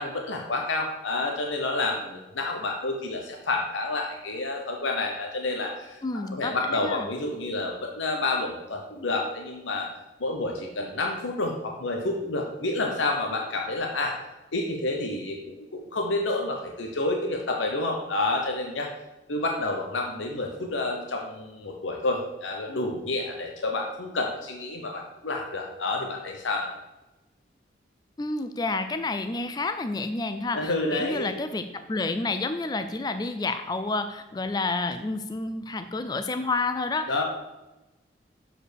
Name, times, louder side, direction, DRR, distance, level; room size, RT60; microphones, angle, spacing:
voice 1, 0.0-9.9 10.2-14.2 14.5-18.9 19.3-26.7 30.5-31.3 37.1-37.2, left 2 dB, 85° left, 2 dB, 0.9 m, -29 dB
voice 2, 6.0-7.1 28.2-37.2, left 3 dB, 20° left, 9 dB, 0.3 m, -30 dB
6.9 x 4.9 x 6.4 m, 1.0 s
head